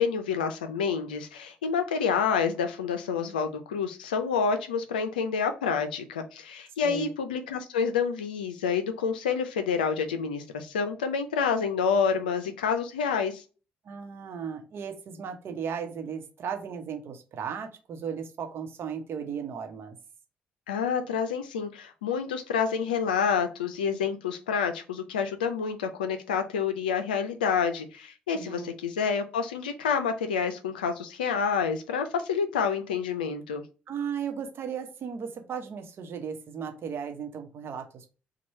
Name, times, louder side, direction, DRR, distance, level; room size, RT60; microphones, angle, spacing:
voice 1, 0.0-13.4 20.7-33.6, left 6 dB, 90° left, 7 dB, 0.4 m, -28 dB
voice 2, 6.8-7.1 13.8-20.0 28.3-28.7 33.9-38.1, right 7 dB, 60° right, 5 dB, 0.9 m, -36 dB
3.0 x 2.3 x 4.2 m, 0.34 s
hypercardioid pair, 45°, 5 cm